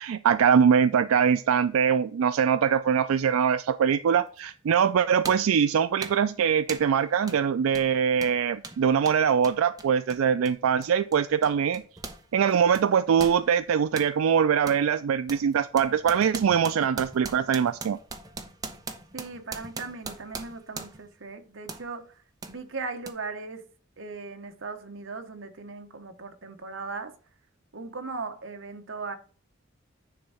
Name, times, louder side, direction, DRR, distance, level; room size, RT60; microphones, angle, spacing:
voice 1, 0.0-11.8 12.3-18.0, right 7 dB, 90° right, 0.4 m, -23 dB
sound 1, 4.4-4.5 5.2-5.5 6.0-6.3 6.7-7.0 7.3-7.4 7.7-12.2 12.5-14.1 14.7-14.8 15.3-21.1 21.7-21.9 22.4-22.6 23.0-23.1, right 3 dB, 20° right, 0.8 m, -40 dB
voice 2, 19.1-22.2 22.5-23.6 24.0-27.1 27.7-29.2, right 4 dB, 65° right, 1.0 m, -38 dB
9.7 x 3.6 x 5.6 m
head